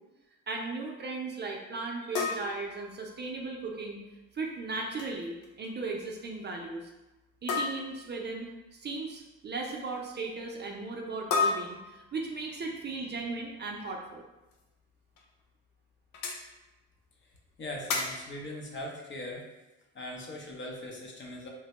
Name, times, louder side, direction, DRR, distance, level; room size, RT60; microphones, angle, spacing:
voice 1, 0.5-4.0 4.3-6.9 7.4-14.2, right 3 dB, 35° right, 0 dB, 0.4 m, -37 dB
sound 1, 2.2-3.5 4.8-5.1 5.4-5.7 6.0-6.1 7.5-8.1 11.3-12.5 14.5-14.6 15.2-15.3 16.1-16.5 17.9-18.4, left 4 dB, 80° left, 0.6 m, -32 dB
voice 2, 17.6-19.4 19.9-21.5, left 1 dB, 40° left, -1 dB, 0.7 m, -40 dB
3.2 x 2.1 x 2.9 m, 1.0 s
cardioid pair, 90°, 30 cm